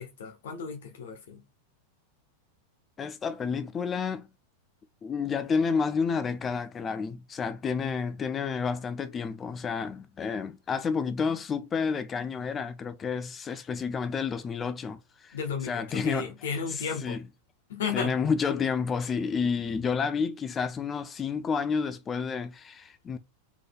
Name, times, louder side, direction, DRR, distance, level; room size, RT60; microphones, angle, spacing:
voice 1, 0.0-1.4 15.3-17.2 17.7-18.2, left 6 dB, 60° left, 0.6 m, -34 dB
voice 2, 3.0-4.3 5.0-15.4 15.6-16.3 16.7-17.2 17.9-23.2, left 5 dB, 20° left, 0.4 m, -30 dB
3.8 x 3.2 x 2.2 m
figure-of-eight pair, 90°, 0 cm